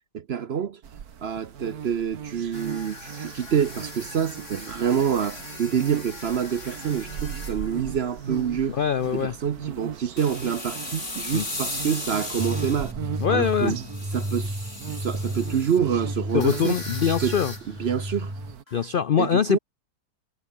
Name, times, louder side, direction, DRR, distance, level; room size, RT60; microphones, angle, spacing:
voice 1, 0.1-0.8 1.2-8.8 9.1-13.0 13.3-13.8 14.1-16.8 17.2-17.4 17.7-18.3 19.2-19.6, right 8 dB, 50° right, 0.8 m, -27 dB
sound 1, 0.8-18.6, right 8 dB, 70° right, 1.8 m, -39 dB
sound 2, 2.5-8.6 9.0-9.3 10.2-12.9 13.4-15.8 16.3-18.3 18.7-18.9, left 2 dB, 45° left, 6.8 m, -38 dB
voice 2, 8.7-9.3 11.3-11.4 13.2-13.7 16.3-17.5 18.7-19.6, left 8 dB, 70° left, 0.5 m, -23 dB
sound 3, 12.4-18.5, right 1 dB, 10° right, 3.5 m, -32 dB
omnidirectional pair, 1.7 m